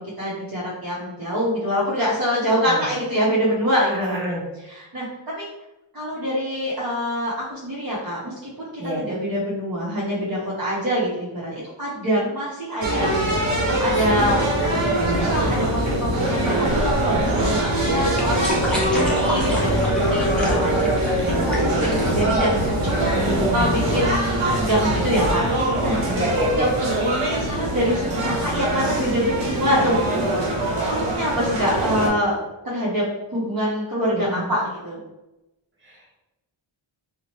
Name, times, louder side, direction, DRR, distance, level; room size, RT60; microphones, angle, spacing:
voice 1, 0.2-4.4 4.6-5.1 5.4-5.5 5.9-13.3 13.8-23.1 23.5-26.2 26.5-26.7 27.2-30.3 30.7-32.3 32.6-33.0 33.3-35.0, equal, 45° right, -7 dB, 0.8 m, -25 dB
voice 2, 3.9-4.4 8.8-9.0 18.4-18.9 23.1-23.7 26.1-26.7 34.1-34.4, equal, 25° right, -5 dB, 1.0 m, -27 dB
sound 1, 12.8-32.1, right 1 dB, 80° right, 0.8 m, -23 dB
sound 2, 16.6-23.7, left 1 dB, ahead, 0.8 m, -31 dB
2.7 x 2.1 x 3.0 m, 0.95 s
wide cardioid pair, 65°, 49 cm